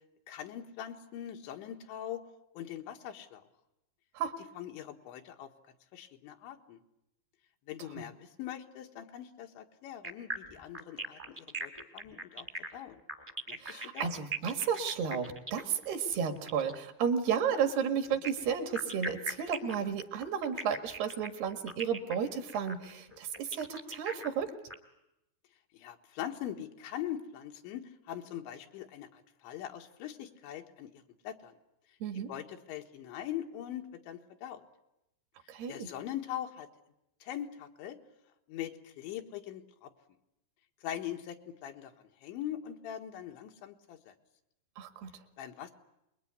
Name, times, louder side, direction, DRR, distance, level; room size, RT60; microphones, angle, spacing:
voice 1, 0.3-2.2 2.6-3.4 4.6-5.5 5.9-6.8 7.7-13.0 13.5-14.1 25.7-31.6 32.3-34.6 35.7-36.7 37.2-38.0 38.5-39.9 40.8-41.9 42.2-44.2 45.4-45.7, left 11 dB, 90° left, 4 dB, 3.9 m, -42 dB
sound 1, 10.0-16.8 18.0-24.7, right 2 dB, 15° right, 1.2 m, -40 dB
voice 2, 13.6-24.5 32.0-32.3 35.5-35.9 44.8-45.1, right 7 dB, 65° right, 7 dB, 3.7 m, -33 dB
27.0 x 22.0 x 9.6 m, 0.86 s
omnidirectional pair, 5.2 m